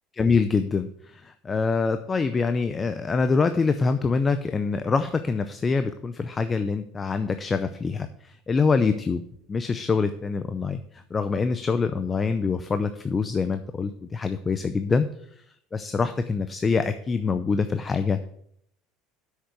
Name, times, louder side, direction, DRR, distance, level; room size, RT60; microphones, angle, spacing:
voice 1, 0.1-9.2 9.5-15.1 15.7-18.3, left 4 dB, 25° left, 10 dB, 0.6 m, -25 dB
7.9 x 6.6 x 6.5 m, 0.68 s
supercardioid pair, 110°, 0 cm